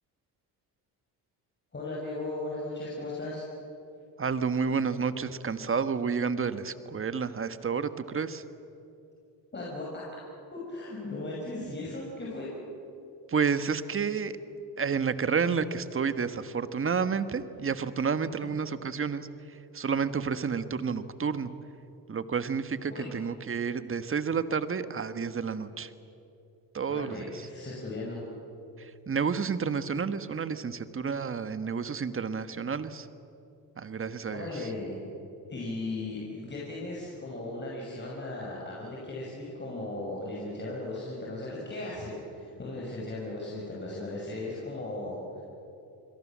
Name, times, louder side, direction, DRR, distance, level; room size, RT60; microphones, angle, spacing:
voice 1, 1.7-3.4 9.5-10.0 10.5-12.5 22.9-23.1 26.9-28.2 34.3-35.0 35.5-45.4, left 2 dB, 25° left, -4 dB, 6.4 m, -37 dB
voice 2, 4.2-8.4 13.3-14.4 14.8-21.5 22.1-25.9 26.7-27.5 28.8-33.1 33.8-34.7, right 6 dB, 30° right, 11 dB, 1.4 m, -30 dB
28.5 x 22.0 x 7.5 m, 2.8 s
cardioid pair, 90°, 41 cm